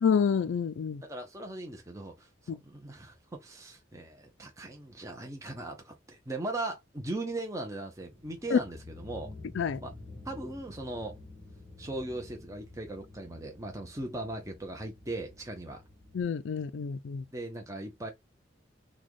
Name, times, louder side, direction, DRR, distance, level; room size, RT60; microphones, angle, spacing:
voice 1, 0.0-1.0 2.5-2.6 8.5-8.6 9.6-9.8 16.1-17.2, left 6 dB, 70° left, 0.4 m, -28 dB
voice 2, 1.0-9.3 9.8-9.9 10.2-11.2 11.8-15.8 17.3-18.1, right 2 dB, 15° right, 0.7 m, -39 dB
sound 1, 8.0-16.2, left 2 dB, 5° left, 1.3 m, -50 dB
4.0 x 2.3 x 3.1 m
head